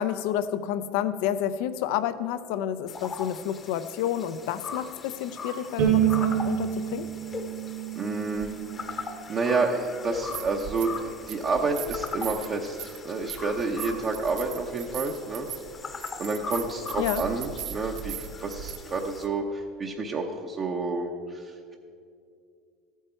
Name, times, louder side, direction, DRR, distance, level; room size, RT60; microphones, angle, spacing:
voice 1, 0.0-7.1 17.0-17.3, left 10 dB, 75° left, 12 dB, 0.6 m, -30 dB
sound 1, 2.9-19.3, left 4 dB, 30° left, 0.9 m, -40 dB
Bowed string instrument, 5.8-9.0, right 10 dB, 90° right, 2.6 m, -27 dB
voice 2, 8.0-8.5 9.3-10.9 11.3-15.5 16.2-21.7, right 3 dB, 35° right, 0 dB, 0.9 m, -29 dB
sound 2, 8.4-8.5 10.1-11.0 11.3-18.8, right 9 dB, 65° right, 0.8 m, -39 dB
14.5 x 9.1 x 4.5 m, 2.4 s
supercardioid pair, 125°, 0 cm